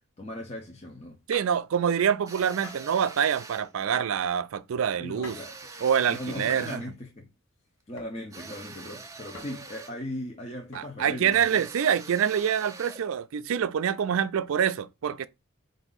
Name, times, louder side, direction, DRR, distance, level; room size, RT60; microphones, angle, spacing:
voice 1, 0.2-1.2 5.0-5.5 6.1-7.3 7.9-11.6, left 1 dB, 30° left, 0.7 m, -38 dB
sound 1, 1.3-1.6 2.6-3.0 3.9-4.3 5.2-5.6 6.5-6.8 8.0-8.2 9.3-9.7 10.7-11.1, left 3 dB, 60° left, 0.9 m, -45 dB
voice 2, 1.3-5.4 5.8-6.8 10.7-15.3, right 8 dB, 70° right, 0.3 m, -26 dB
sound 2, 2.3-3.7 5.2-6.9 8.3-10.0 11.3-13.1, right 3 dB, 15° right, 0.5 m, -44 dB
4.6 x 2.6 x 3.9 m
head